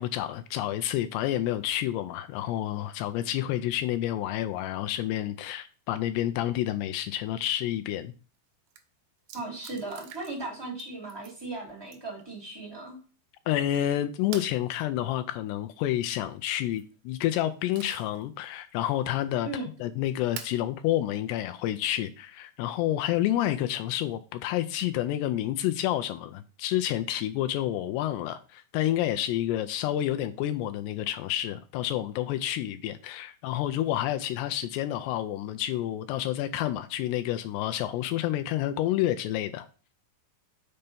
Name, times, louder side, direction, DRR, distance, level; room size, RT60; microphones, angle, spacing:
voice 1, 0.0-8.1 13.5-19.5 19.8-39.7, left 13 dB, 85° left, 2.5 m, -29 dB
sound 1, 8.4-8.5 8.7-8.8 9.3-10.5 10.8-11.4 11.9-12.2 14.3-14.6 16.5-16.9 17.4-18.2 18.7-18.8 20.4-20.6 21.8-21.9 23.9-24.3, right 9 dB, 75° right, 1.9 m, -45 dB
voice 2, 9.3-13.0 19.4-19.7, right 2 dB, 35° right, 0.4 m, -37 dB
6.7 x 4.4 x 5.3 m
omnidirectional pair, 5.1 m